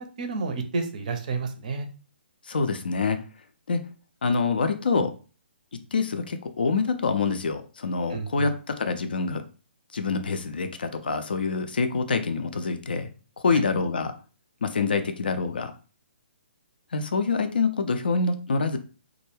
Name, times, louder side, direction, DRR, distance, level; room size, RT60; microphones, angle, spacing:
voice 1, 0.2-1.9 8.1-8.5 13.5-13.6, right 4 dB, 40° right, 6 dB, 0.5 m, -30 dB
voice 2, 2.4-3.2 3.7-3.8 4.2-5.1 5.9-9.4 9.9-13.1 13.4-14.1 14.6-15.7 16.9-18.8, left 4 dB, 55° left, 8 dB, 0.3 m, -26 dB
2.3 x 2.1 x 3.2 m, 0.35 s
figure-of-eight pair, 130°, 6 cm